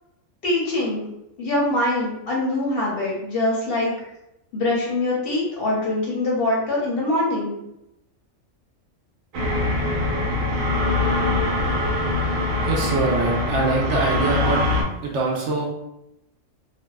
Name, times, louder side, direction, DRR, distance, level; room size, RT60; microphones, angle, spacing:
voice 1, 0.4-1.0 1.4-3.9 4.5-7.5, left 2 dB, 60° left, -4 dB, 0.7 m, -23 dB
sound 1, 9.3-14.8, left 2 dB, 90° right, 1.0 m, -23 dB
voice 2, 12.6-14.6 15.0-15.7, right 3 dB, 65° right, -2 dB, 0.8 m, -23 dB
2.6 x 2.1 x 2.2 m, 0.84 s
omnidirectional pair, 1.4 m